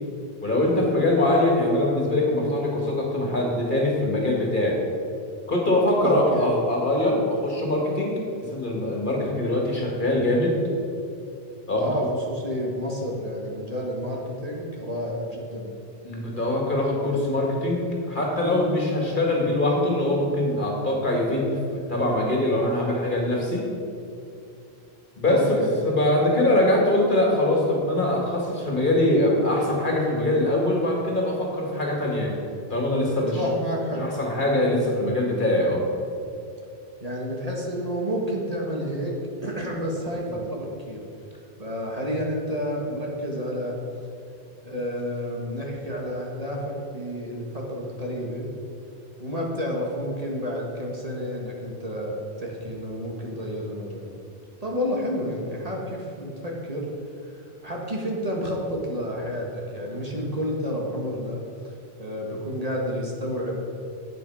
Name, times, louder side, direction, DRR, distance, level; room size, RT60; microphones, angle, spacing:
voice 1, 0.4-4.8 5.5-8.2 8.5-10.6 11.7-11.9 16.0-23.7 25.2-25.6 25.8-32.4 32.7-33.4 34.0-35.8, left 1 dB, 50° left, -2 dB, 2.3 m, -23 dB
voice 2, 6.0-6.5 11.8-15.7 25.2-25.8 33.3-34.1 37.0-41.0 41.6-43.8 44.6-48.5 49.2-54.2 54.6-56.9 57.2-61.7 62.0-63.6, equal, 35° right, -2 dB, 1.7 m, -30 dB
12.0 x 8.6 x 4.9 m, 2.6 s
omnidirectional pair, 1.1 m